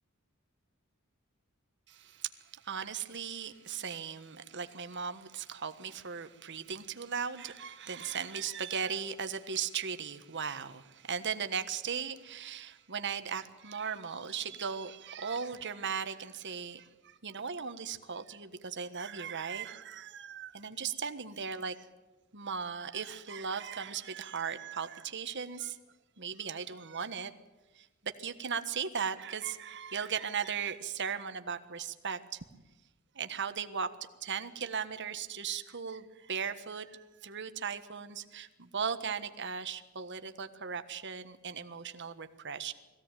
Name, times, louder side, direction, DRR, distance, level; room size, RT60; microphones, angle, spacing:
voice 1, 1.9-21.9 22.3-25.8 26.2-27.3 27.7-32.4 33.1-33.9 34.2-42.7, right 6 dB, 55° right, 1.4 m, -37 dB
22.0 x 16.0 x 9.1 m
head